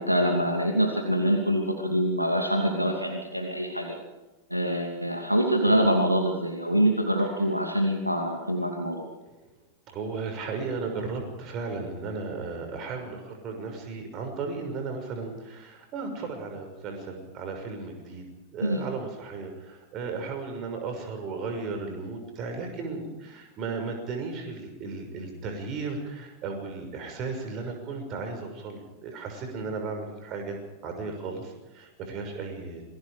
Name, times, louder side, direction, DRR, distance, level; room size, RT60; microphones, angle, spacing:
voice 1, 0.0-4.0 4.5-9.0 18.6-18.8, equal, 90° right, 3 dB, 2.7 m, -25 dB
voice 2, 9.9-30.6 30.8-32.9, right 4 dB, 35° right, 4 dB, 6.3 m, -35 dB
27.5 x 20.0 x 5.1 m, 1.1 s
figure-of-eight pair, 90°, 0 cm